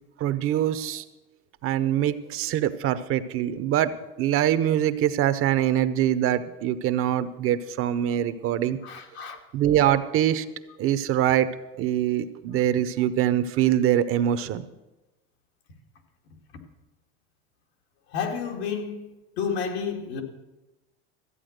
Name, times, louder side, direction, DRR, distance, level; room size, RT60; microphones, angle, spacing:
voice 1, 0.2-1.0 1.6-3.9 4.2-8.8 9.5-10.4 10.8-11.5 11.8-14.6, right 11 dB, 45° right, 0.7 m, -23 dB
voice 2, 8.8-9.4 18.1-20.2, left 6 dB, 80° left, 2.3 m, -31 dB
14.0 x 8.6 x 6.5 m
supercardioid pair, 120°, 31 cm